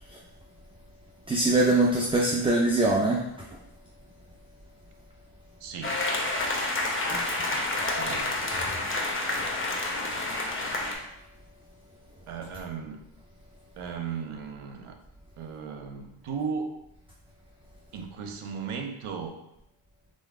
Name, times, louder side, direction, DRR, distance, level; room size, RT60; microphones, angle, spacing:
voice 1, 1.3-3.2 7.1-7.2, right 2 dB, 15° right, -1 dB, 0.3 m, -23 dB
voice 2, 5.6-6.0 7.9-8.6 12.3-13.0 13.8-15.0 15.4-16.8 17.9-19.4, right 6 dB, 80° right, 5 dB, 0.8 m, -36 dB
sound 1, 5.8-10.9, left 2 dB, 25° left, 0.8 m, -29 dB
3.8 x 3.8 x 3.5 m, 0.83 s
cardioid pair, 110°, 50 cm